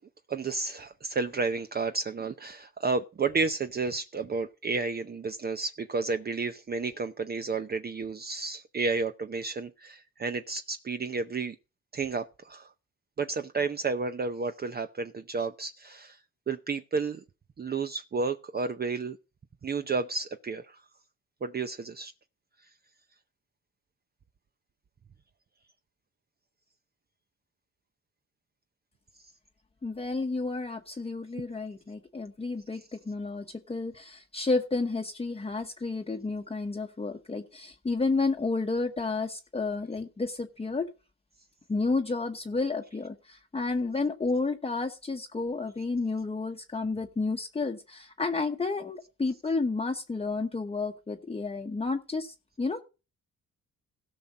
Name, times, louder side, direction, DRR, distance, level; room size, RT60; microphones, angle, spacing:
voice 1, 0.3-11.6 11.9-12.7 13.2-16.2 16.5-17.2 17.6-19.2 19.6-20.8 21.4-22.1 32.7-32.9, right 4 dB, 30° right, 0.7 m, -31 dB
voice 2, 29.8-40.9 41.7-52.8, left 3 dB, 20° left, 1.0 m, -31 dB
17.0 x 5.9 x 5.3 m
cardioid pair, 90°, 30 cm